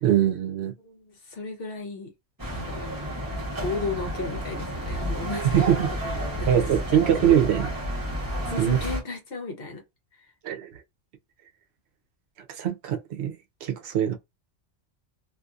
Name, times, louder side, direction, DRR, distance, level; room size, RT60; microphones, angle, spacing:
voice 1, 0.0-0.7 5.5-5.9 6.5-7.7 8.6-8.8 10.4-10.7 12.5-13.3 13.6-14.2, right 10 dB, 70° right, 0.9 m, -22 dB
voice 2, 0.8-2.1 2.5-2.9 3.6-7.1 8.4-9.8 10.1-10.3, left 3 dB, 55° left, 1.0 m, -35 dB
sound 1, 2.4-9.0, equal, 20° right, 1.0 m, -31 dB
2.7 x 2.5 x 2.4 m
omnidirectional pair, 1.2 m